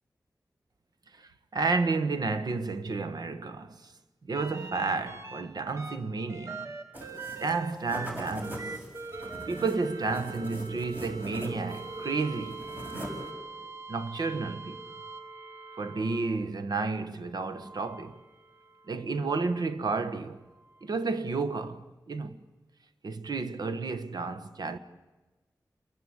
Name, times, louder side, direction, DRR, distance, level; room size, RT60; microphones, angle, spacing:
voice 1, 1.1-3.9 4.3-6.7 7.4-8.8 9.5-12.7 13.9-14.8 15.8-18.2 18.9-20.4 20.8-22.4 23.0-24.8, right 3 dB, 80° right, 1.3 m, -31 dB
sound 1, 4.3-5.4 5.8-16.5 17.4-18.9 20.7-20.8, right 4 dB, 45° right, 2.0 m, -43 dB
sound 2, 6.9-7.6 7.9-11.9 12.2-13.3, equal, 25° right, 6.8 m, -41 dB
29.0 x 23.0 x 8.1 m
wide cardioid pair, 110°, 7 cm